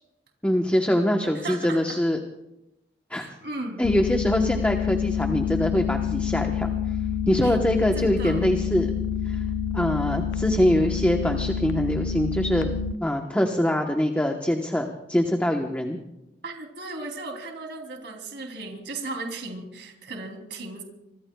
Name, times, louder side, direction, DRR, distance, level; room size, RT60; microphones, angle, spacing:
voice 1, 0.4-2.2 3.1-3.3 3.8-6.7 7.3-8.9 9.3-9.4 9.7-12.7 13.0-16.0, equal, 10° left, 3 dB, 1.0 m, -24 dB
voice 2, 1.3-2.0 3.1-3.8 7.4-7.6 7.9-8.5 16.4-20.8, right 2 dB, 70° right, 2 dB, 3.1 m, -36 dB
sound 1, 3.8-12.9, left 7 dB, 85° left, 0.6 m, -27 dB
25.5 x 24.0 x 2.3 m, 0.89 s
head